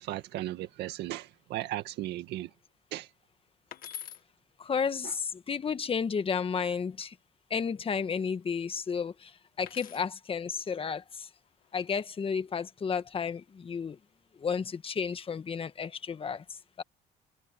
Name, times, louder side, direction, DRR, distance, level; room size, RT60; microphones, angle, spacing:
voice 1, 0.0-2.5 2.9-3.1 5.0-5.1, right 15 dB, 80° right, 1.9 m, -36 dB
sound 1, 3.7-4.2 6.5-7.1 9.6-10.1 11.5-11.9, left 9 dB, 60° left, 1.8 m, -45 dB
voice 2, 4.6-7.1 7.5-9.3 9.6-11.3 11.7-14.0 14.4-16.4 16.8-16.9, left 6 dB, 35° left, 1.4 m, -32 dB
cardioid pair, 110°, 17 cm